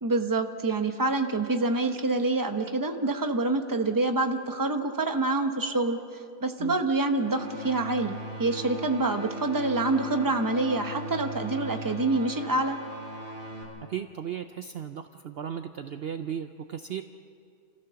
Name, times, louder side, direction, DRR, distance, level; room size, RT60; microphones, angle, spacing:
voice 1, 0.0-6.0 6.4-12.8, right 2 dB, 15° right, 6 dB, 0.8 m, -26 dB
sound 1, 7.2-13.6, right 1 dB, 40° right, 5.6 m, -38 dB
voice 2, 13.9-17.0, right 9 dB, 70° right, 8 dB, 0.6 m, -36 dB
29.0 x 15.0 x 7.0 m, 2.4 s
omnidirectional pair, 1.7 m